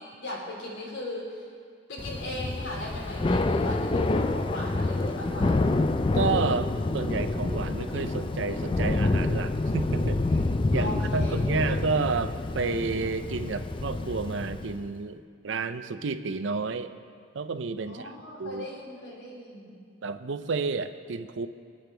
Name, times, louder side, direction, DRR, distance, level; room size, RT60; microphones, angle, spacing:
voice 1, 0.0-1.4 1.9-5.7 10.8-11.8 17.8-19.8, left 1 dB, 70° left, -4 dB, 3.4 m, -38 dB
Thunder / Rain, 2.0-14.9, left 2 dB, 25° left, 0.4 m, -27 dB
voice 2, 6.1-10.4 10.7-16.9 17.3-18.1 18.4-18.7 20.0-21.5, right 4 dB, 75° right, 10 dB, 0.6 m, -30 dB
25.0 x 8.7 x 3.4 m, 2.2 s
head